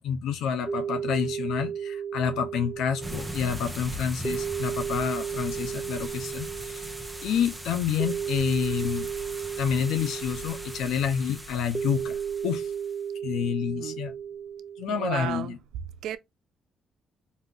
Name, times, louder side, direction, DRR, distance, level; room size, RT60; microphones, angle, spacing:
voice 1, 0.0-6.9 7.2-9.1 9.6-12.7 13.2-14.1 14.8-15.6, left 8 dB, 85° left, 0.8 m, -29 dB
sound 1, 0.7-14.9, right 7 dB, 35° right, 0.5 m, -34 dB
sound 2, 3.0-12.9, equal, 5° right, 0.9 m, -40 dB
voice 2, 14.9-15.6 16.0-16.2, right 11 dB, 85° right, 0.4 m, -33 dB
4.2 x 2.7 x 3.6 m
cardioid pair, 90°, 0 cm